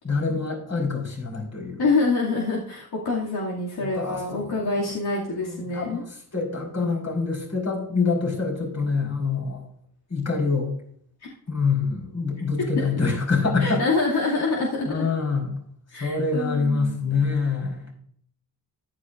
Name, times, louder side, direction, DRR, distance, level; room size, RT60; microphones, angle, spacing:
voice 1, 0.0-1.8 3.8-4.6 5.5-6.0 6.3-9.6 10.1-10.7 11.5-13.8 14.8-15.5 16.0-17.9, left 4 dB, 40° left, 0 dB, 4.9 m, -25 dB
voice 2, 1.8-6.0 12.6-13.0 13.6-15.1 15.9-17.4, left 3 dB, 75° left, -5 dB, 2.7 m, -26 dB
14.0 x 12.0 x 2.6 m, 0.63 s
cardioid pair, 95°, 39 cm